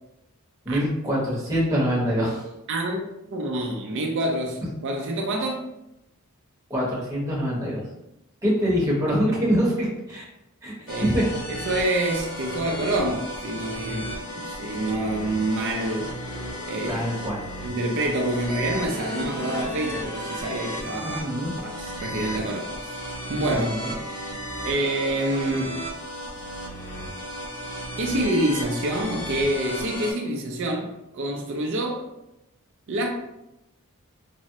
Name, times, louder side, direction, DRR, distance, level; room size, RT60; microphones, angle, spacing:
voice 1, 0.6-2.4 6.7-7.8 8.4-10.2 10.6-10.7 11.0-11.2 13.9-14.0 16.9-17.4 21.0-21.5 23.5-23.9, equal, 15° right, -5 dB, 0.9 m, -24 dB
voice 2, 2.7-5.6 10.9-11.1 11.7-16.2 16.7-17.0 17.6-22.9 23.3-23.7 24.7-25.9 28.0-32.0 32.9-33.1, right 1 dB, 60° right, 1 dB, 0.4 m, -27 dB
sound 1, 10.9-30.1, equal, 70° left, 0.8 m, -34 dB
3.3 x 2.0 x 2.7 m, 0.88 s
head